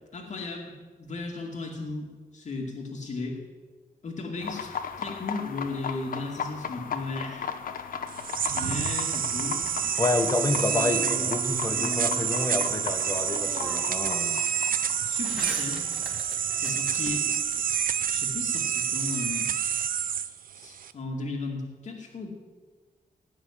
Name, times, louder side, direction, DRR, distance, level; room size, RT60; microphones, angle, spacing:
voice 1, 0.1-3.4 4.0-7.5 8.5-9.6 10.7-12.8 15.0-15.8 16.5-17.3 18.1-19.6 20.6-22.3, left 3 dB, 50° left, 0 dB, 2.2 m, -36 dB
sound 1, 4.4-15.9, left 6 dB, 65° left, 0.9 m, -37 dB
sound 2, 8.1-20.9, right 8 dB, 65° right, 0.6 m, -28 dB
sound 3, 9.3-10.6 12.8-12.9 13.3-14.1 14.4-17.6, equal, 5° right, 3.0 m, -43 dB
voice 2, 10.0-14.4, left 2 dB, 20° left, 8 dB, 1.1 m, -29 dB
17.5 x 6.2 x 9.8 m, 1.4 s
wide cardioid pair, 165°, 16 cm